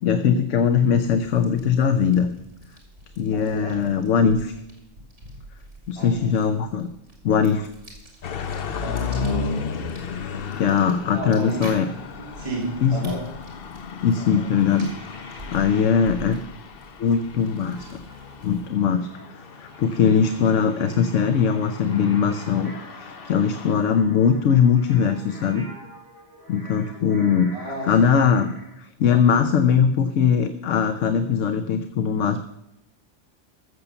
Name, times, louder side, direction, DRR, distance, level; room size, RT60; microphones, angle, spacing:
voice 1, 0.0-2.3 3.2-4.5 5.9-6.9 7.2-7.7 10.6-11.9 12.8-13.1 14.0-14.9 15.5-16.4 17.0-18.0 18.4-25.7 26.5-28.5 28.8-32.4, left 7 dB, 85° left, 9 dB, 1.1 m, -21 dB
sound 1, 0.6-18.8, right 1 dB, 75° right, 3.5 m, -46 dB
voice 2, 3.3-3.8 6.0-6.3 8.8-9.5 11.1-11.8 12.4-13.3 14.2-14.5 27.5-28.2, right 2 dB, 25° right, -4 dB, 2.7 m, -32 dB
sound 2, 8.2-23.7, left 5 dB, 55° left, 0.9 m, -35 dB
sound 3, 14.0-16.0 17.7-28.7, equal, 45° right, 5.1 m, -47 dB
14.5 x 6.9 x 6.9 m, 0.85 s
omnidirectional pair, 1.2 m